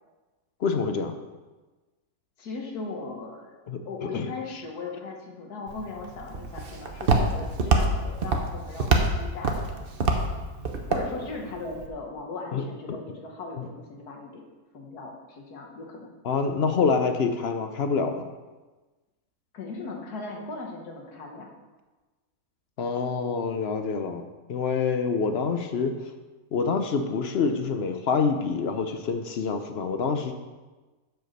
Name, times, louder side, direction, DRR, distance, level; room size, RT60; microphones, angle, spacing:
voice 1, 0.6-1.1 3.7-4.6 12.5-12.6 13.6-13.7 16.2-18.3 22.8-24.2 24.5-26.1 26.5-30.3, left 5 dB, 60° left, 7 dB, 0.7 m, -26 dB
voice 2, 2.4-9.8 10.9-14.4 14.7-16.1 19.5-21.5, left 3 dB, 80° left, 1 dB, 1.7 m, -38 dB
Walk footsteps, 5.7-11.9, right 3 dB, 45° right, 0.9 m, -26 dB
7.9 x 4.7 x 6.4 m, 1.2 s
omnidirectional pair, 1.6 m